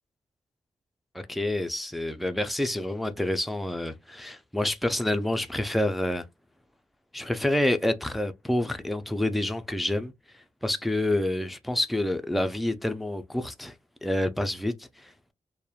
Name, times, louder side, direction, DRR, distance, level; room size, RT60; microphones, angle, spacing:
voice 1, 1.1-6.2 7.1-10.1 10.6-13.7 14.0-15.3, left 1 dB, ahead, 0.3 m, -28 dB
2.9 x 2.1 x 2.3 m
wide cardioid pair, 105°, 12 cm